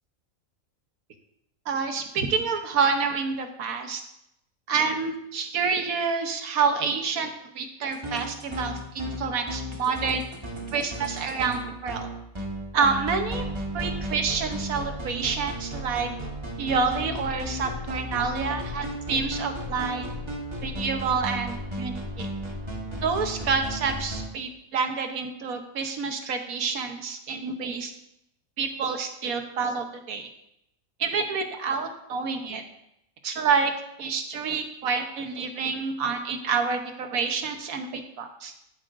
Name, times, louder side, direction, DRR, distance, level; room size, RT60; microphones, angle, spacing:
voice 1, 1.7-4.0 4.7-10.2 10.7-12.1 12.7-13.4 13.7-16.1 16.6-20.1 20.6-22.3 23.0-27.9 28.6-30.3 31.0-32.6 33.2-33.7 34.0-38.5, right 5 dB, 90° right, 6 dB, 1.4 m, -28 dB
sound 1, 7.9-24.3, equal, 20° right, 1.4 m, -34 dB
13.0 x 7.5 x 2.6 m, 0.81 s
omnidirectional pair, 1.5 m